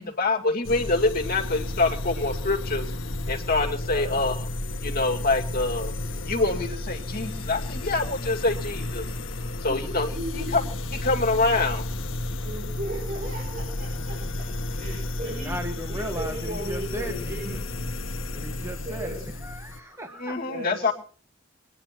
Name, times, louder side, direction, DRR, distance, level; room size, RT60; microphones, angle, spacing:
voice 1, 0.0-2.9 3.3-4.4 4.8-5.9 6.2-9.1 9.6-10.1 10.5-10.6 11.0-11.8 20.2-20.9, left 3 dB, 50° left, 3 dB, 2.3 m, -25 dB
sound 1, 0.6-19.8, left 1 dB, 75° left, 1.2 m, -32 dB
voice 2, 3.8-4.3 9.3-10.6 12.4-14.5 14.8-15.6 15.9-17.6 18.8-19.3 20.5-20.9, right 1 dB, 40° right, -2 dB, 5.5 m, -36 dB
voice 3, 15.3-17.6 18.3-19.1 19.4-20.3, equal, 15° right, 4 dB, 1.6 m, -36 dB
22.0 x 9.9 x 6.0 m, 0.43 s
head